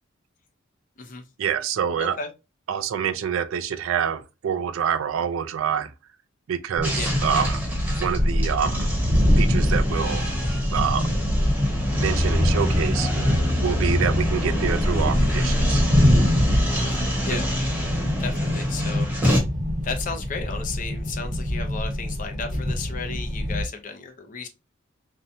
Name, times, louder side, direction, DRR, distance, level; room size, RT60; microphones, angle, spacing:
voice 1, 1.4-2.2 2.7-5.9 6.5-7.6 8.0-8.9 9.4-10.3 10.7-11.1 12.0-13.1 13.6-15.8 17.3-17.4, right 8 dB, 85° right, 0.4 m, -26 dB
voice 2, 2.0-2.3 7.0-7.2 16.8-17.5 18.2-19.1 19.8-24.5, left 4 dB, 40° left, 0.5 m, -34 dB
sound 1, 6.7-23.6, equal, 35° right, 0.9 m, -24 dB
sound 2, 6.8-19.4, left 1 dB, 5° right, 0.9 m, -27 dB
2.6 x 2.1 x 2.6 m
head